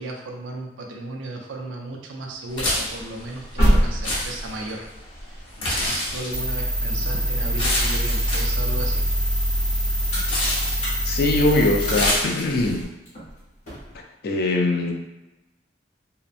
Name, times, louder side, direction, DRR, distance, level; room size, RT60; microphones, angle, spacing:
voice 1, 0.0-4.9 5.2-9.1, right 2 dB, 90° right, 1 dB, 0.5 m, -35 dB
sound 1, 2.5-12.8, left 1 dB, 85° left, 0.9 m, -29 dB
sound 2, 3.2-8.2 8.6-14.0, equal, 40° left, 0.8 m, -28 dB
sound 3, 6.3-12.1, equal, 5° left, 0.6 m, -24 dB
voice 2, 11.0-12.9 14.2-14.9, left 2 dB, 55° left, 1 dB, 0.4 m, -21 dB
2.7 x 2.1 x 2.4 m, 1.0 s
head